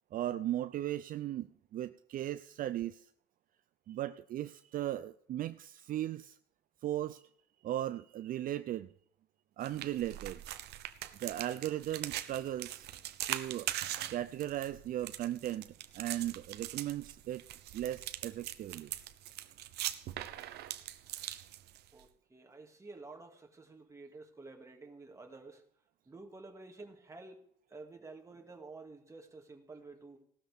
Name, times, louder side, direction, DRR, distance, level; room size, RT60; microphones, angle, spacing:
voice 1, 0.1-3.1 3.9-6.4 6.8-7.2 7.6-8.9 9.6-10.4 11.2-12.9 13.3-13.7 14.1-15.7 15.9-17.4 17.7-18.9, right 13 dB, 55° right, 0.5 m, -37 dB
sound 1, 9.6-22.0, right 13 dB, 80° right, 0.9 m, -41 dB
voice 2, 21.9-25.7 26.1-30.2, right 3 dB, 20° right, 2.2 m, -51 dB
17.0 x 13.0 x 3.6 m
cardioid pair, 110°, 17 cm